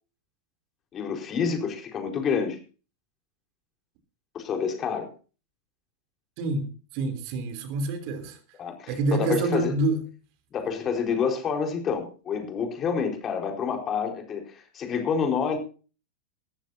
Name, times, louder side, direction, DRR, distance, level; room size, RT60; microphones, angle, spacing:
voice 1, 0.9-2.6 4.3-5.1 8.6-9.7 10.5-15.6, left 6 dB, 25° left, 4.4 m, -28 dB
voice 2, 6.4-8.4 8.9-10.1, right 2 dB, 45° right, 3.3 m, -27 dB
19.0 x 14.5 x 2.7 m
figure-of-eight pair, 90°, 0 cm